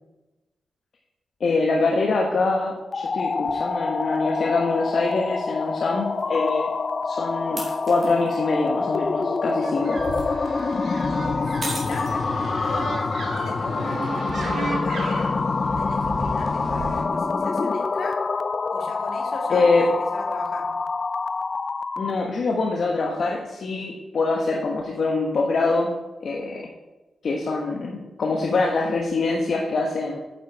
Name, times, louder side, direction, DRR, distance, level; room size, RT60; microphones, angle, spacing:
voice 1, 1.4-6.7 7.0-10.0 19.5-19.9 22.0-25.9 26.2-26.7 27.2-30.2, left 3 dB, 50° left, 0 dB, 1.2 m, -24 dB
sound 1, 2.8-22.2, left 4 dB, 35° left, 0.4 m, -26 dB
sound 2, 4.9-5.0 6.2-6.3 7.6-8.3 9.8-10.2 11.6-12.5, right 2 dB, 30° right, 3.3 m, -35 dB
sound 3, 9.6-17.0, right 2 dB, 50° right, 2.4 m, -34 dB
voice 2, 11.1-11.4 11.7-15.4 15.8-18.2 18.7-20.7, left 2 dB, 70° left, 1 dB, 2.4 m, -38 dB
9.1 x 7.9 x 4.7 m, 1.1 s
wide cardioid pair, 130°, 0 cm